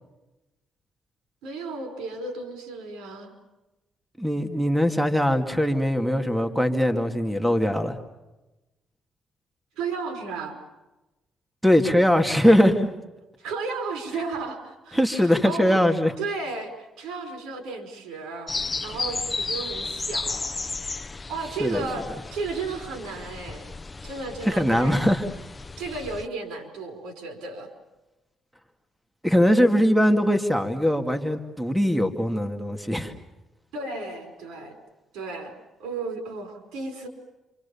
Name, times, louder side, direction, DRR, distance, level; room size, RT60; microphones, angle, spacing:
voice 1, 1.4-3.3 9.8-10.6 13.4-15.8 16.2-18.5 18.8-20.6 21.3-22.0 22.3-23.7 24.0-24.9 25.8-27.7 33.7-34.7 35.1-35.5 35.8-37.1, right 3 dB, 90° right, 6 dB, 5.0 m, -33 dB
voice 2, 4.2-7.9 11.6-12.9 14.9-16.1 21.6-21.9 24.4-25.2 29.2-33.1, equal, 5° right, 6 dB, 2.4 m, -21 dB
sound 1, 18.5-26.3, left 3 dB, 25° left, 0.8 m, -34 dB
28.0 x 27.0 x 7.1 m, 1.0 s
cardioid pair, 90°, 0 cm